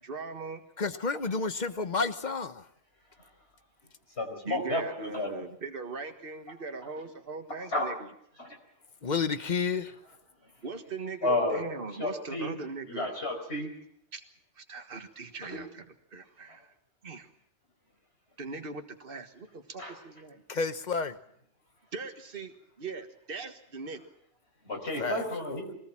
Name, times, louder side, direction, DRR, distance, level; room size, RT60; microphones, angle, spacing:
voice 1, 0.0-0.6 4.4-7.9 10.6-13.1 14.1-14.2 14.6-15.8 16.1-16.7 17.0-17.3 18.4-20.4 21.9-24.0, right 4 dB, 50° right, 6 dB, 1.8 m, -40 dB
voice 2, 0.8-2.6 9.0-9.9 20.5-21.2 25.0-25.2, left 4 dB, 40° left, 11 dB, 1.1 m, -30 dB
voice 3, 4.2-5.4 7.7-7.9 8.4-8.6 11.2-11.7 12.0-12.6 12.8-13.7 15.4-15.6 16.5-16.6 19.8-20.0 24.6-25.8, left 1 dB, 65° left, 1 dB, 5.4 m, -32 dB
23.0 x 19.0 x 7.4 m, 0.71 s
omnidirectional pair, 1.2 m